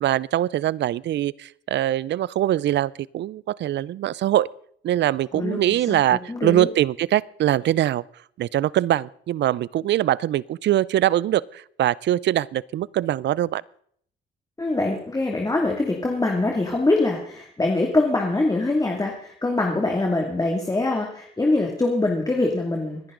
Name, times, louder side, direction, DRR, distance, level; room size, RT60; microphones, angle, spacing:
voice 1, 0.0-4.5 4.8-8.0 8.4-13.6, right 13 dB, 65° right, 23 dB, 0.5 m, -23 dB
voice 2, 5.9-6.7 14.6-23.0, left 2 dB, 20° left, 0 dB, 2.4 m, -23 dB
25.0 x 10.5 x 3.9 m, 0.63 s
cardioid pair, 90°, 20 cm